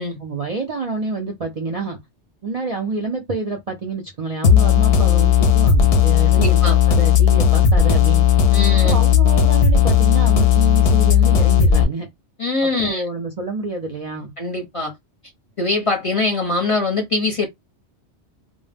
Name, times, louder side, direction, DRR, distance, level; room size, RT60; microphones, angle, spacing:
voice 1, 0.2-2.0 2.4-8.2 8.8-12.1 12.6-14.3, right 3 dB, 45° right, 0.5 m, -28 dB
sound 1, 4.4-11.8, left 8 dB, 65° left, 0.7 m, -14 dB
voice 2, 6.3-6.8 8.5-9.0 12.4-13.0 14.4-14.9 15.6-17.5, left 3 dB, 35° left, 0.6 m, -22 dB
2.1 x 2.1 x 3.3 m
omnidirectional pair, 1.2 m